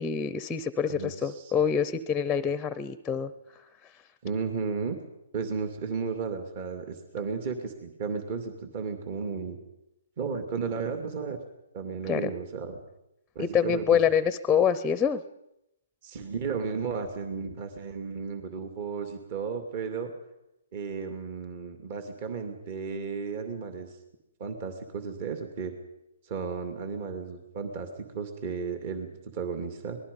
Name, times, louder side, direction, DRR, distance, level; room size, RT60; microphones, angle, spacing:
voice 1, 0.0-3.3 12.1-12.3 13.4-15.2, left 7 dB, 10° left, 15 dB, 0.7 m, -26 dB
voice 2, 1.0-1.5 4.2-5.0 5.3-9.6 10.2-11.4 11.7-12.8 13.3-13.8 16.0-20.1 20.7-24.0 24.4-25.7 26.2-30.0, right 5 dB, 40° right, 6 dB, 2.6 m, -34 dB
26.0 x 20.0 x 5.4 m, 0.86 s
hypercardioid pair, 150°, 0 cm